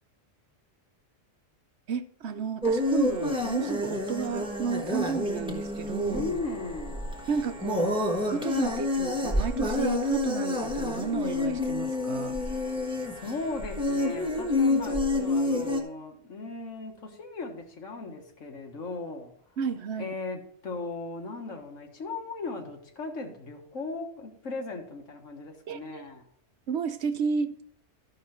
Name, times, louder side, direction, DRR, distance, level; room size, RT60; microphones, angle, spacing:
voice 1, 1.9-6.2 7.3-8.0 8.3-12.4 19.6-20.2 25.7-26.1 26.7-27.6, right 6 dB, 65° right, 0.9 m, -31 dB
sound 1, 2.6-15.8, left 2 dB, 5° right, 1.3 m, -29 dB
voice 2, 6.1-7.1 12.6-12.8 13.1-19.3 20.0-26.2, left 3 dB, 75° left, 1.8 m, -37 dB
13.0 x 5.7 x 4.4 m
omnidirectional pair, 1.3 m